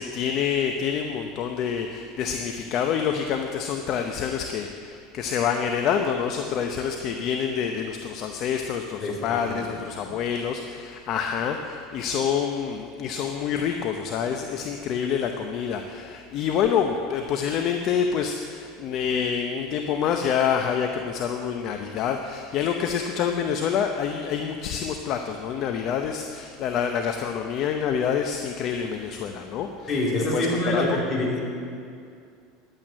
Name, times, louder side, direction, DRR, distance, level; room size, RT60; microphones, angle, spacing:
voice 1, 0.0-31.0, left 7 dB, 50° left, 4 dB, 0.8 m, -27 dB
voice 2, 9.0-9.6 9.9-10.1 29.9-31.4, left 1 dB, 30° left, -3 dB, 3.5 m, -26 dB
10.5 x 9.0 x 8.6 m, 2.4 s
supercardioid pair, 120°, 0 cm